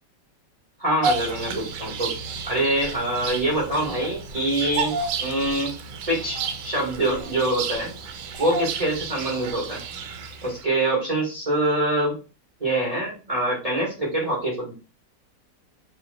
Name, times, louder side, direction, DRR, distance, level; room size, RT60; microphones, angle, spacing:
voice 1, 0.8-2.1 2.4-5.7 6.1-7.9 8.4-9.8 10.4-12.2 12.6-14.7, right 1 dB, 25° right, -4 dB, 1.1 m, -25 dB
Bird vocalization bird call bird song, 1.0-10.6, right 4 dB, 75° right, 1.2 m, -31 dB
3.1 x 2.7 x 3.8 m, 0.31 s
omnidirectional pair, 1.9 m